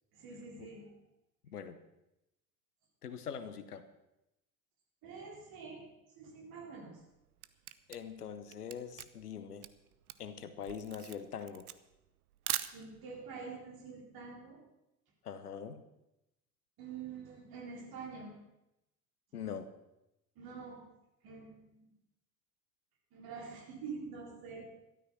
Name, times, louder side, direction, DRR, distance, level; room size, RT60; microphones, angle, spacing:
voice 1, 0.1-0.9 5.0-5.9 6.2-6.9 12.7-14.6 16.8-18.3 20.4-20.9 21.2-21.9 23.1-24.7, right 5 dB, 50° right, 0 dB, 4.0 m, -46 dB
voice 2, 1.4-1.8 3.0-3.8 7.9-9.7 10.2-11.7 15.2-15.8 19.3-19.7, left 7 dB, 80° left, 11 dB, 1.0 m, -43 dB
Camera, 7.0-13.2, right 13 dB, 75° right, 0.7 m, -42 dB
12.5 x 12.5 x 6.1 m, 0.90 s
figure-of-eight pair, 60°, 45 cm